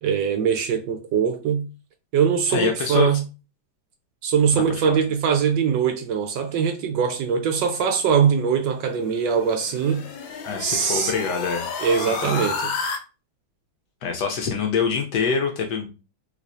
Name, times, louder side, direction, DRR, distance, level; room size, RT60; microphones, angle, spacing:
voice 1, 0.0-1.7 2.1-3.2 4.2-10.1 10.6-11.2 11.8-12.7, right 7 dB, 75° right, 1.2 m, -22 dB
voice 2, 2.5-3.1 4.5-5.0 10.4-11.7 12.2-12.5 14.0-15.9, left 6 dB, 70° left, 1.1 m, -25 dB
sound 1, 9.0-13.0, left 4 dB, 85° left, 1.5 m, -31 dB
3.3 x 3.1 x 2.5 m
omnidirectional pair, 2.2 m